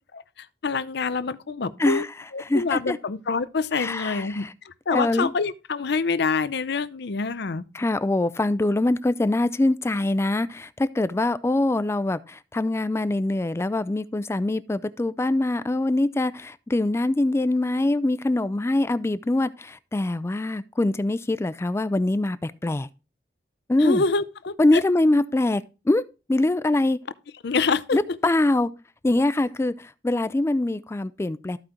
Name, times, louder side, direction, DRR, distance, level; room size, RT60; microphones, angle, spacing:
voice 1, 0.4-2.0 2.3-7.6 23.8-24.8 27.4-28.2, left 4 dB, 65° left, 0.6 m, -26 dB
voice 2, 2.5-3.0 3.7-4.5 4.9-5.3 7.7-22.9 23.7-24.0 24.6-26.0 26.3-27.0 27.9-28.7 29.0-31.6, left 2 dB, 15° left, 0.3 m, -23 dB
14.0 x 4.9 x 2.9 m
head